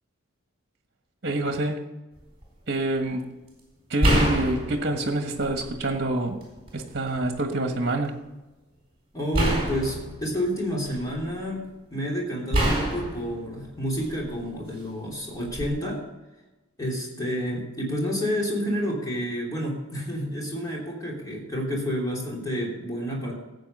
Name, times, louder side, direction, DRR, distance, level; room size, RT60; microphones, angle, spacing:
voice 1, 1.2-1.9 2.7-3.3 3.9-6.4 6.7-8.2, right 1 dB, 50° right, 5 dB, 1.4 m, -27 dB
sound 1, 2.2-2.4 4.0-5.8 6.3-7.3 9.3-11.3 12.5-14.4 15.5-15.7, right 1 dB, 30° right, 4.1 m, -27 dB
voice 2, 9.1-11.6 11.9-16.0 16.8-23.3, equal, 15° left, -3 dB, 3.2 m, -29 dB
14.5 x 8.3 x 5.5 m, 1.1 s
head